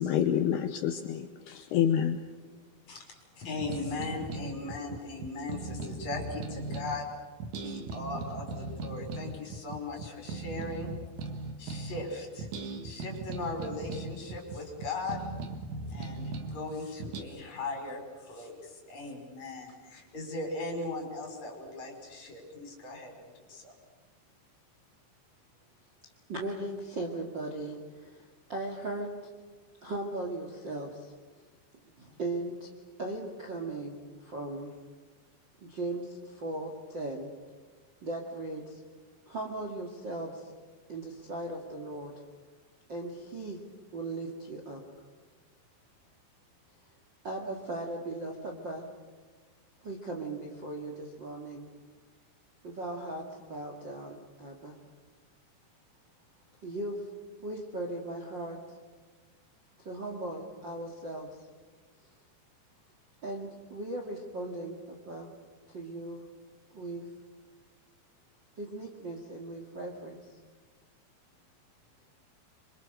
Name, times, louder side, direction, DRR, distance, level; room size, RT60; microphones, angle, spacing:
voice 1, 0.0-2.2, left 9 dB, 75° left, 2.7 m, -28 dB
voice 2, 2.9-7.1 7.6-10.9 11.6-12.5 12.8-15.2 15.9-23.7, left 3 dB, 40° left, 6.2 m, -38 dB
sound 1, 3.5-7.0 7.4-12.1 12.4-16.6 17.0-17.2, right 3 dB, 55° right, 2.4 m, -38 dB
voice 3, 26.3-29.1 29.8-31.1 32.0-32.7 33.0-34.7 35.6-37.3 38.0-38.8 39.3-40.5 40.9-42.1 42.9-43.6 43.9-44.8 47.2-48.9 49.8-51.7 52.6-54.8 56.6-57.1 57.4-58.8 59.8-61.4 63.2-65.3 65.7-66.3 66.7-67.1 68.6-70.3, right 2 dB, 35° right, 2.0 m, -38 dB
26.5 x 25.5 x 6.6 m
omnidirectional pair, 5.1 m